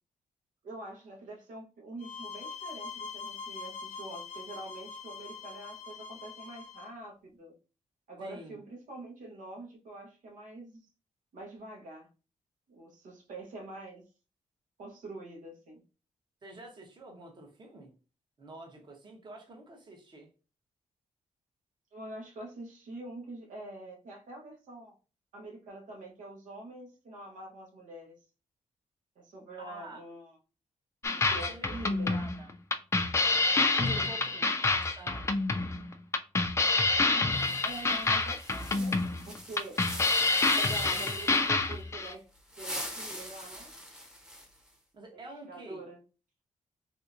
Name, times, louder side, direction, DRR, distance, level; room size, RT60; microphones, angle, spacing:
voice 1, 0.6-7.5 8.1-10.8 11.3-12.1 12.7-14.0 14.8-15.8 21.9-25.0 25.3-28.2 29.1-30.4 31.1-32.2 33.7-34.6 37.1-37.3 37.6-39.8 40.6-42.3 42.6-43.7 45.5-46.0, right 2 dB, 90° right, 1.0 m, -45 dB
sound 1, 2.0-6.9, left 5 dB, 70° left, 0.6 m, -43 dB
voice 2, 8.2-8.6 16.4-17.9 18.4-20.3 29.6-30.0 31.3-31.7 32.1-32.5 33.9-35.3 36.5-36.6 40.9-41.1 44.9-45.8, right 2 dB, 35° right, 0.9 m, -48 dB
sound 2, 31.0-42.1, left 3 dB, 20° left, 0.3 m, -27 dB
sound 3, 37.3-41.5 42.4-44.7, equal, 5° right, 0.7 m, -42 dB
3.4 x 2.7 x 2.5 m
wide cardioid pair, 125°, 13 cm